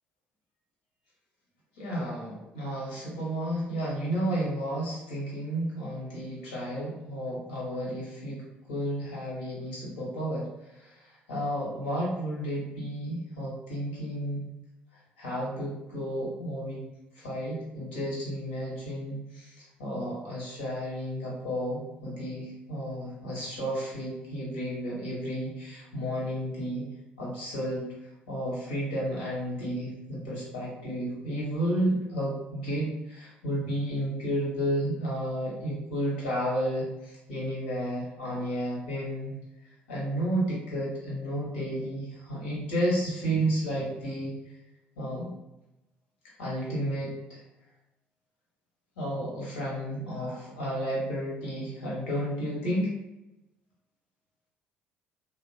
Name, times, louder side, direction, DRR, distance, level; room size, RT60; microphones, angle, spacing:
voice 1, 1.8-8.4 8.7-14.4 15.2-16.8 17.1-26.8 27.2-27.9 28.3-39.3 39.9-44.3 45.0-45.3 46.4-47.4 49.0-52.9, equal, 75° left, -5 dB, 1.1 m, -32 dB
3.3 x 2.1 x 2.6 m, 0.92 s
figure-of-eight pair, 50°, 6 cm